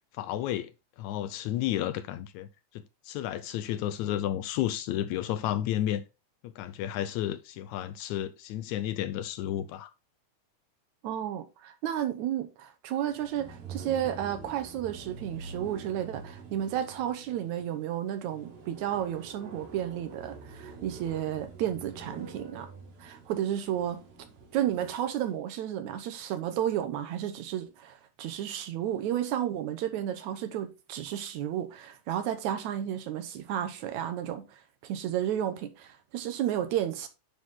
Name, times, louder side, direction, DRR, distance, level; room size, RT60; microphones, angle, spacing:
voice 1, 0.1-0.7 1.0-2.5 2.7-6.0 6.4-9.9, left 12 dB, 80° left, 1.8 m, -32 dB
voice 2, 11.0-22.7 23.0-24.0 24.5-37.1, right 11 dB, 75° right, 2.1 m, -32 dB
sound 1, 13.1-25.1, right 4 dB, 55° right, 2.3 m, -46 dB
9.6 x 4.1 x 3.8 m
omnidirectional pair, 3.6 m